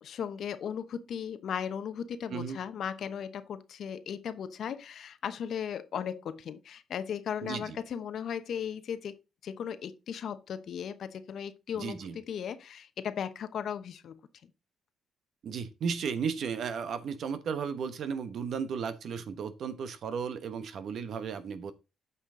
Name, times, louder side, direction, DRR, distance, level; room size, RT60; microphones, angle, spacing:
voice 1, 0.0-9.2 9.4-14.5, left 8 dB, 65° left, 0.9 m, -37 dB
voice 2, 7.4-7.8 11.7-12.2 15.4-21.7, right 6 dB, 65° right, 1.1 m, -34 dB
8.4 x 5.7 x 3.8 m
cardioid pair, 90°, 0 cm